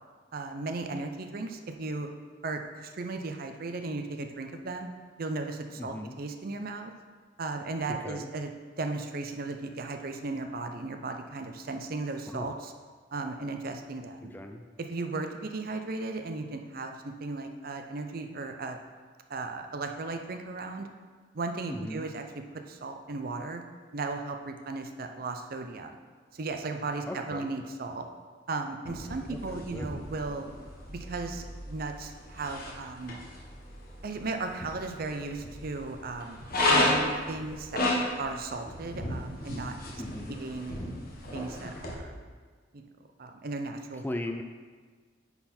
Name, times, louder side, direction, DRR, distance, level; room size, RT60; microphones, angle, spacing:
voice 1, 0.3-2.1 2.4-4.9 5.2-6.9 7.4-8.5 8.8-12.7 13.1-14.3 14.9-18.8 19.3-20.9 21.3-22.2 22.7-23.6 23.9-26.0 26.3-28.1 28.5-30.5 30.9-33.2 34.0-36.4 36.7-37.8 38.2-40.0 40.3-40.8 41.3-42.1 42.7-42.9 43.2-44.0, right 3 dB, 50° right, 6 dB, 0.6 m, -36 dB
voice 2, 5.8-6.1 7.9-8.3 12.3-12.5 14.2-14.7 21.7-22.1 27.1-27.5 29.3-29.9 40.0-40.4 44.0-44.4, left 1 dB, 10° left, 5 dB, 0.3 m, -38 dB
sound 1, 28.8-41.9, left 1 dB, 50° left, 1.4 m, -33 dB
9.8 x 4.1 x 4.3 m, 1.5 s
head